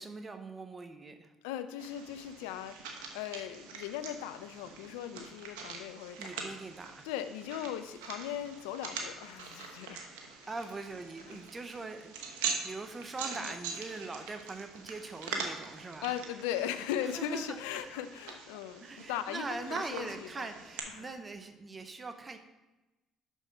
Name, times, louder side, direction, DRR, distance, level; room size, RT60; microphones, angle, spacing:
voice 1, 0.0-1.3 6.2-7.1 10.5-16.1 17.0-17.6 18.8-22.4, right 3 dB, 30° right, 7 dB, 0.7 m, -42 dB
voice 2, 1.4-6.4 7.0-10.0 11.3-11.5 13.4-13.5 16.0-20.1 20.4-20.5 20.9-21.1, left 10 dB, 85° left, 11 dB, 0.5 m, -38 dB
sound 1, 1.8-20.8, right 5 dB, 85° right, 1.0 m, -43 dB
6.3 x 6.3 x 5.2 m, 1.1 s
supercardioid pair, 65°, 0 cm